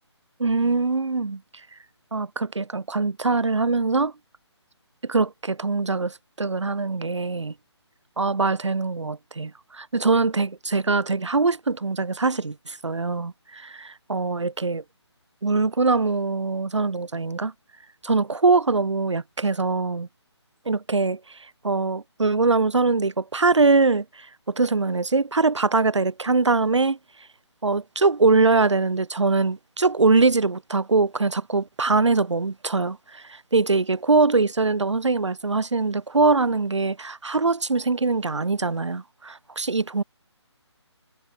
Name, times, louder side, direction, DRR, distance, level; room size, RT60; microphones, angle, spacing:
voice 1, 0.4-1.4 2.1-4.1 5.0-7.5 8.2-14.8 15.4-17.5 18.0-20.1 20.7-21.4 21.6-27.0 27.6-40.0, right 3 dB, 80° right, 3.5 m, -22 dB
hypercardioid pair, 170°, 15 cm